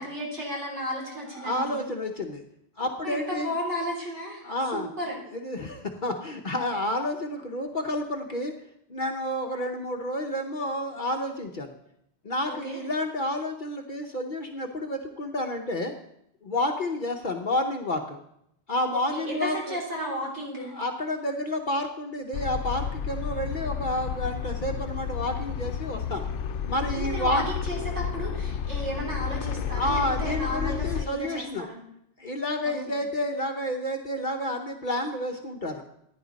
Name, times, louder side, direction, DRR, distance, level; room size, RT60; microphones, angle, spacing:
voice 1, 0.0-1.8 3.0-4.4 4.7-5.2 12.4-12.8 18.9-20.7 26.9-31.8 32.6-33.0, equal, 80° right, -2 dB, 4.1 m, -34 dB
voice 2, 1.4-2.4 2.8-3.5 4.4-4.9 5.3-8.5 8.9-11.7 12.2-15.9 16.4-18.2 18.7-19.8 20.7-26.3 26.7-27.4 29.8-31.7 32.2-35.8, left 1 dB, 45° left, 3 dB, 1.0 m, -30 dB
sound 1, 22.3-31.0, left 7 dB, 85° left, 0.9 m, -31 dB
15.5 x 10.0 x 4.1 m, 0.76 s
omnidirectional pair, 1.2 m